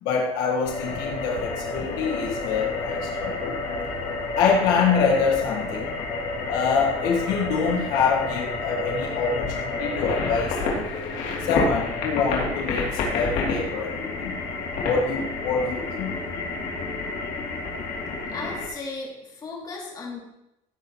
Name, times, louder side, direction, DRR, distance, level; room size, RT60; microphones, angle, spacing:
voice 1, 0.0-3.6 4.4-5.9 6.5-10.9 11.4-14.3 14.8-16.1, left 5 dB, 80° left, -1 dB, 1.6 m, -25 dB
sound 1, 0.6-18.7, left 3 dB, 60° left, 3.0 m, -29 dB
voice 2, 18.3-20.2, left 3 dB, 25° left, -2 dB, 2.9 m, -36 dB
16.0 x 8.2 x 3.1 m, 0.89 s
cardioid pair, 145°, 15 cm